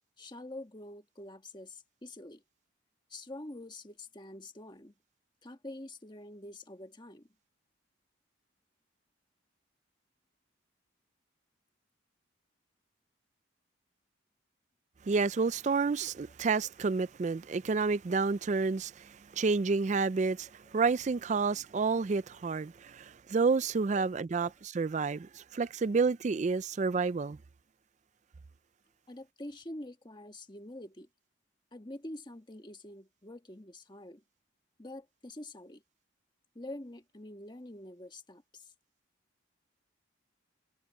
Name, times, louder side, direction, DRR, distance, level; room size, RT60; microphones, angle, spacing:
voice 1, 0.2-2.4 3.1-4.9 5.4-7.3 20.7-20.8 23.9-24.0 24.4-24.5 29.1-31.1 31.7-34.2 34.8-35.8 36.5-38.7, left 1 dB, 20° left, 1.4 m, -46 dB
voice 2, 15.1-27.4, right 4 dB, 35° right, 0.4 m, -30 dB
head